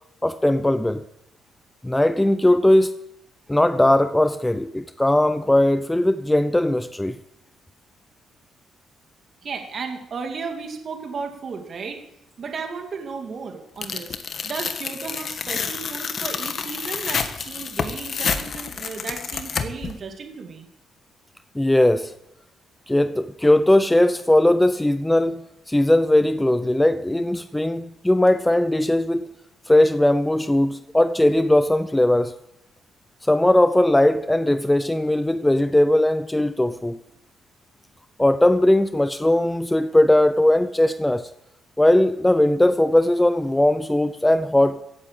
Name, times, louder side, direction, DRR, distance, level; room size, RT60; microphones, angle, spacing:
voice 1, 0.2-1.0 1.8-2.9 3.5-7.2 21.5-22.1 22.9-29.3 29.7-32.3 33.2-37.0 38.2-41.3 41.8-44.8, left 1 dB, 10° left, 0.6 m, -19 dB
voice 2, 9.4-12.0 12.4-14.2 14.4-20.7, right 5 dB, 50° right, 2.3 m, -34 dB
Tearing, 13.8-19.9, left 6 dB, 50° left, 1.5 m, -29 dB
16.5 x 8.8 x 7.5 m
cardioid pair, 90°, 0 cm